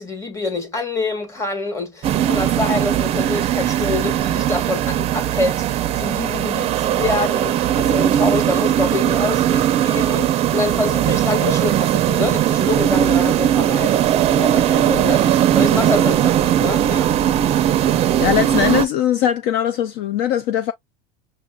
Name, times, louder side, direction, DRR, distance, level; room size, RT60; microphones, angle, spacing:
voice 1, 0.0-17.1, left 2 dB, 15° left, 1.3 m, -26 dB
sound 1, 2.0-18.8, right 11 dB, 30° right, 0.5 m, -18 dB
voice 2, 18.2-20.7, left 10 dB, 55° left, 0.5 m, -20 dB
5.7 x 2.5 x 2.3 m
supercardioid pair, 140°, 19 cm